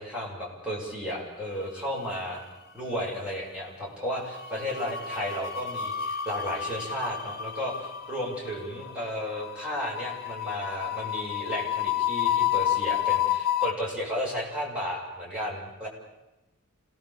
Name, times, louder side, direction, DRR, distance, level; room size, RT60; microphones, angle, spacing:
voice 1, 0.0-2.5 2.7-15.9, equal, 5° right, -5 dB, 7.1 m, -33 dB
sound 1, 1.7-2.5 2.7-3.0 4.2-13.7, left 10 dB, 45° left, 1.1 m, -30 dB
27.5 x 18.0 x 7.7 m, 0.99 s
head